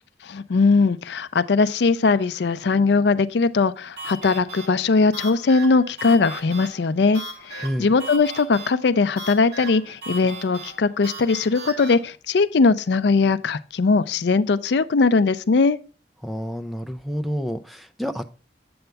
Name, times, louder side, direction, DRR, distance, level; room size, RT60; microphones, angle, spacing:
voice 1, 0.3-15.8, left 4 dB, 65° left, 0.4 m, -20 dB
sound 1, 4.0-12.0, right 2 dB, 60° right, 2.3 m, -38 dB
voice 2, 7.6-7.9 16.2-18.3, equal, ahead, 0.4 m, -29 dB
8.0 x 7.8 x 3.4 m
head